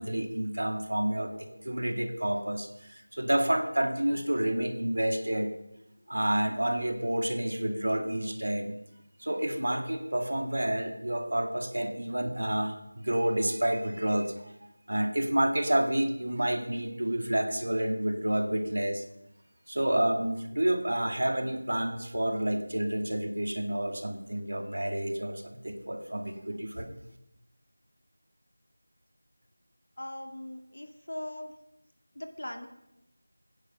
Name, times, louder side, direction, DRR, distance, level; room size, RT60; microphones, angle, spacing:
voice 1, 0.0-5.5 6.1-8.8 9.2-14.5 14.9-19.0 19.7-26.9, right 1 dB, 60° right, 6 dB, 2.2 m, -29 dB
voice 2, 30.0-31.5 32.2-32.7, left 1 dB, 60° left, 5 dB, 2.2 m, -40 dB
21.0 x 10.0 x 5.5 m, 0.86 s
figure-of-eight pair, 180°, 0 cm